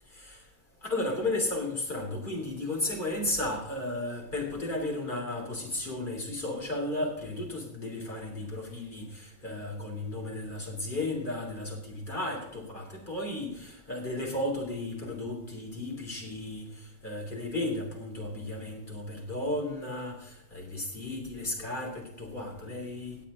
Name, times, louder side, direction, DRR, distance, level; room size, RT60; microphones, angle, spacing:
voice 1, 0.1-0.4 0.8-23.2, left 2 dB, 25° left, 0 dB, 3.3 m, -34 dB
17.5 x 8.5 x 3.7 m, 0.82 s
omnidirectional pair, 2.0 m